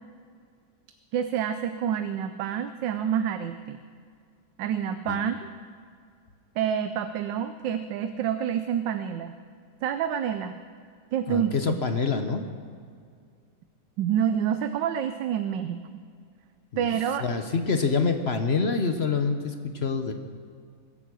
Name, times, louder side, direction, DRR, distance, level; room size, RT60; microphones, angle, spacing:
voice 1, 1.1-3.8 4.6-5.5 6.6-9.4 9.8-10.6 11.1-11.8 14.0-15.9 16.8-17.2, right 9 dB, 85° right, 10 dB, 1.3 m, -28 dB
voice 2, 11.3-12.4 16.7-16.9 17.2-20.1, left 4 dB, 45° left, 7 dB, 0.9 m, -26 dB
22.5 x 9.4 x 6.3 m, 2.2 s
omnidirectional pair, 1.9 m